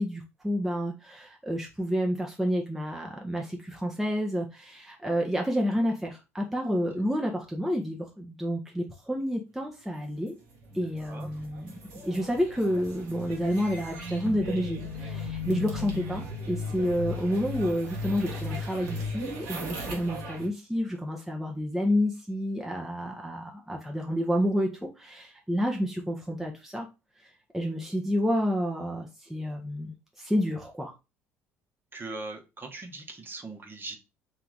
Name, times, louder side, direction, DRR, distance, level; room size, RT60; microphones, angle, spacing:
voice 1, 0.0-10.3 10.7-11.7 12.0-26.9 27.2-30.9, equal, 5° right, 0 dB, 0.8 m, -29 dB
sound 1, 10.5-20.5, left 2 dB, 70° right, 1.1 m, -37 dB
voice 2, 31.9-34.0, right 3 dB, 30° right, 3 dB, 1.1 m, -40 dB
3.3 x 2.8 x 3.9 m, 0.26 s
figure-of-eight pair, 55°, 7 cm